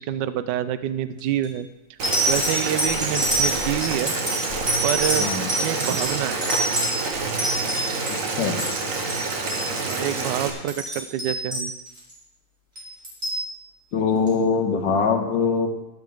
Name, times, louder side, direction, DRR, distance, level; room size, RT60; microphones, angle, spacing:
voice 1, 0.0-1.7 2.3-4.1 4.8-6.4 9.8-11.7, right 11 dB, 75° right, 12 dB, 1.2 m, -27 dB
sound 1, 1.2-1.5 2.0-8.2 8.5-8.8 9.1-9.2 9.5-9.6 9.9-10.1 10.5-12.1 12.8-13.4 14.3-14.4, right 1 dB, 25° right, 5.0 m, -26 dB
Boiling, 2.0-10.5, right 3 dB, 50° right, 1.5 m, -28 dB
voice 2, 5.2-5.5 8.1-8.6 13.9-15.7, left 5 dB, 80° left, 3 dB, 2.0 m, -23 dB
12.0 x 11.5 x 3.6 m, 0.97 s
omnidirectional pair, 2.0 m